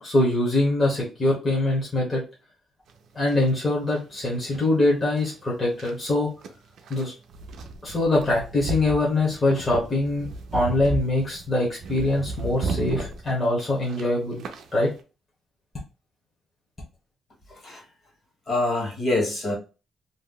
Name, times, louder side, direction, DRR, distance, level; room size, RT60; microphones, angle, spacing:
voice 1, 0.0-2.2 3.1-6.3 6.9-7.1 7.8-14.4 14.7-14.9, left 2 dB, 20° left, 0.9 m, -23 dB
sound 1, 2.9-15.0, right 3 dB, 70° right, 0.5 m, -35 dB
voice 2, 18.5-19.5, left 2 dB, 45° left, 1.4 m, -25 dB
2.7 x 2.1 x 3.7 m
cardioid pair, 155°, 0 cm